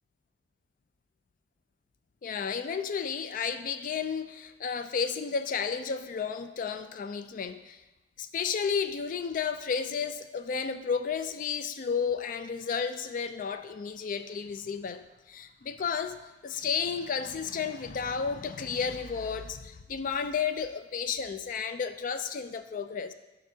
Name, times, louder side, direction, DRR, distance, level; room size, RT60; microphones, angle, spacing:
voice 1, 2.2-7.8 8.2-23.1, left 6 dB, 50° left, 10 dB, 0.3 m, -32 dB
7.6 x 5.3 x 2.7 m, 1.1 s
head